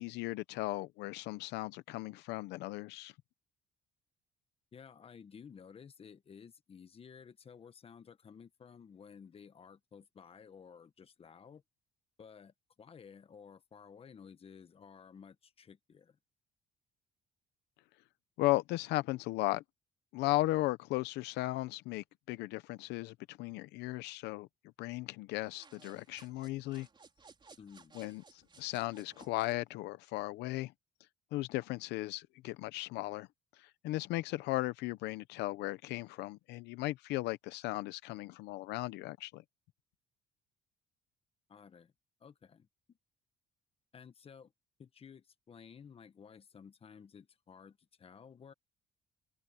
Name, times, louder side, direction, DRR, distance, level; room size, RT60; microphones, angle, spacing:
voice 1, 0.0-3.1 18.4-19.6 20.1-24.5 24.8-26.9 27.9-30.7 31.3-33.3 33.6-39.4, left 18 dB, 90° left, 0.7 m, -36 dB
voice 2, 4.7-11.6 12.2-16.2 27.6-27.9 41.5-41.9 42.2-43.0 43.9-44.5 44.8-48.5, left 6 dB, 35° left, 1.3 m, -54 dB
sound 1, 25.4-29.6, right 4 dB, 30° right, 5.2 m, -59 dB
cardioid pair, 110°, 17 cm